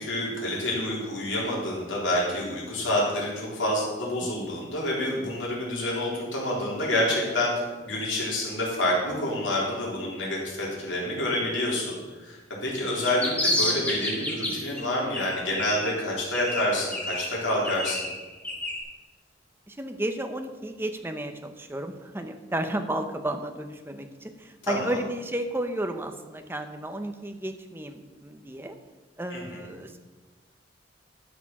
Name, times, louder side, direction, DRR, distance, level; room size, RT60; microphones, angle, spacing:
voice 1, 0.0-18.1 24.6-25.0 29.3-29.7, left 1 dB, 90° left, -4 dB, 3.6 m, -28 dB
sound 1, 12.8-14.8 15.1-16.0 16.3-18.8, left 1 dB, 10° left, 2.0 m, -30 dB
voice 2, 19.7-28.8 29.2-30.0, right 1 dB, 10° right, 6 dB, 0.8 m, -33 dB
11.5 x 6.7 x 6.1 m, 1.2 s
head